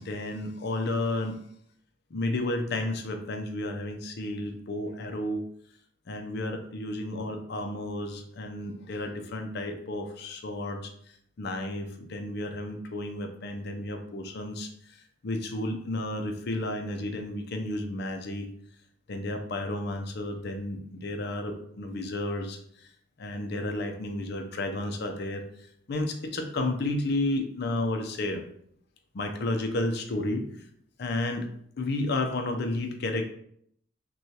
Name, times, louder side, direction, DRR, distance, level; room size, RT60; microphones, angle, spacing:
voice 1, 0.0-1.4 2.1-5.4 6.1-10.9 11.4-15.0 15.2-18.5 19.1-22.9 23.2-25.4 25.9-28.4 29.1-30.7 31.0-31.5 31.8-33.3, left 1 dB, 55° left, 4 dB, 0.5 m, -32 dB
6.0 x 2.3 x 2.8 m, 0.68 s
head